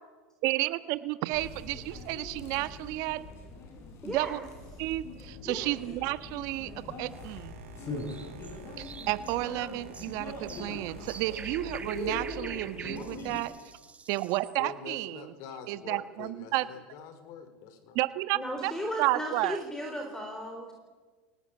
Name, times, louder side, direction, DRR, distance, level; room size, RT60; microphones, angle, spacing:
voice 1, 0.4-3.2 4.0-4.4 4.8-6.7 7.0-7.6 8.8-13.5 14.1-15.3 15.7-16.7 17.9-18.7 19.0-19.6, right 18 dB, 55° right, 13 dB, 1.3 m, -31 dB
sound 1, 1.3-13.4, left 1 dB, 40° left, 7.4 m, -41 dB
voice 2, 4.0-4.4 5.4-5.7 18.3-20.7, equal, 10° left, 3 dB, 4.0 m, -36 dB
Boat Water vehicle, 7.1-13.5, right 7 dB, 75° right, 3.6 m, -52 dB
sound 2, 8.0-14.6, right 5 dB, 20° right, 2.3 m, -46 dB
voice 3, 14.6-18.0, left 7 dB, 55° left, 10 dB, 4.5 m, -45 dB
24.0 x 19.0 x 8.7 m, 1.4 s
supercardioid pair, 115°, 7 cm